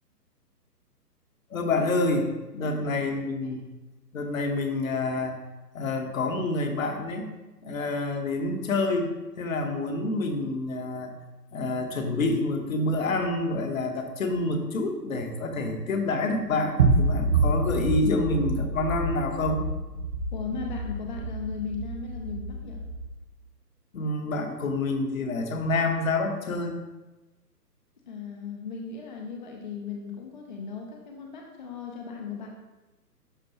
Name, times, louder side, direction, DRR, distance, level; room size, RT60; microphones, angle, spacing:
voice 1, 1.5-2.2 2.5-3.6 4.1-5.4 5.7-7.3 7.6-11.1 11.5-19.6 23.9-26.8, left 2 dB, 55° left, 4 dB, 1.1 m, -27 dB
sound 1, 16.8-23.1, right 3 dB, 40° right, 1.1 m, -27 dB
voice 2, 20.3-22.8 28.1-32.5, left 5 dB, 30° left, 0 dB, 0.6 m, -37 dB
11.5 x 4.5 x 2.9 m, 1.1 s
figure-of-eight pair, 140°, 49 cm